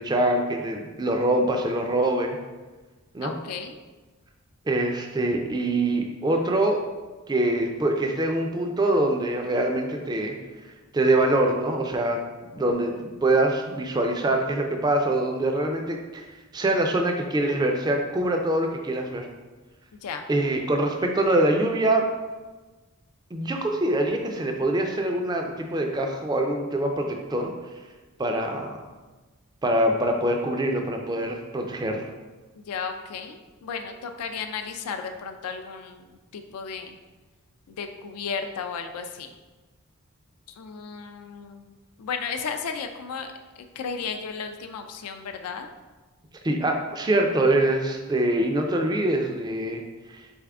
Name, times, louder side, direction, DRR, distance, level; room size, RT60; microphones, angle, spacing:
voice 1, 0.0-2.4 3.1-3.3 4.7-6.8 7.3-10.3 10.9-12.2 12.5-16.3 16.5-19.3 20.3-22.0 23.3-27.5 28.2-28.8 29.6-32.1 46.4-49.8 50.1-50.3, right 1 dB, 20° right, 3 dB, 0.3 m, -24 dB
voice 2, 3.2-3.8 20.0-20.2 32.7-36.1 36.3-36.9 37.7-39.3 40.6-41.7 42.0-43.3 43.8-45.7, left 6 dB, 85° left, 6 dB, 0.4 m, -34 dB
4.1 x 3.5 x 3.4 m, 1.3 s
head